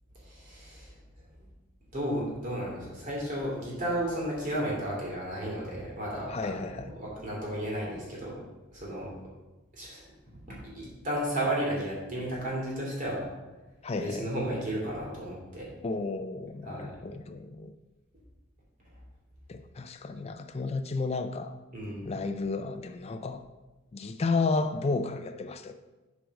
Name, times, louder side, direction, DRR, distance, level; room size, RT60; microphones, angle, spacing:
voice 1, 0.1-1.0 1.4-1.5 1.9-6.7 6.9-8.3 8.7-9.2 9.7-10.1 10.5-13.3 14.0-15.7 16.6-17.0 21.7-22.1, right 1 dB, 40° right, -4 dB, 3.0 m, -33 dB
voice 2, 6.3-6.9 13.8-14.3 15.8-17.7 19.5-21.6 22.1-23.4 23.9-25.7, left 3 dB, 30° left, 7 dB, 0.4 m, -32 dB
8.3 x 4.6 x 5.2 m, 1.1 s
head